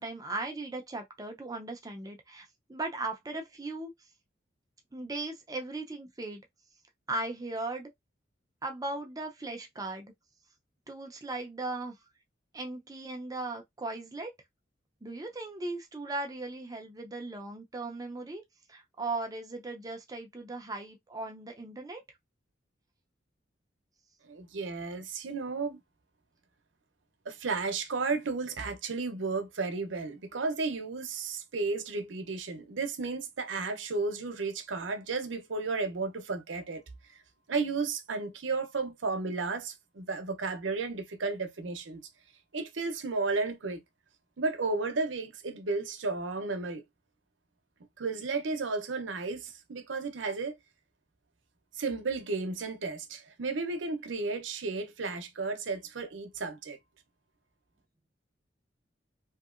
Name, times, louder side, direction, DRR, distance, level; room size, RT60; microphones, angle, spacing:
voice 1, 0.0-3.9 4.9-6.4 7.1-7.9 8.6-10.1 10.9-12.0 12.5-14.3 15.0-18.4 18.7-22.0, right 2 dB, 20° right, 0.5 m, -37 dB
voice 2, 24.2-25.8 27.3-36.8 37.5-42.0 42.5-43.8 44.4-46.8 48.0-50.6 51.7-56.8, right 4 dB, 85° right, 0.7 m, -33 dB
2.8 x 2.7 x 2.4 m
head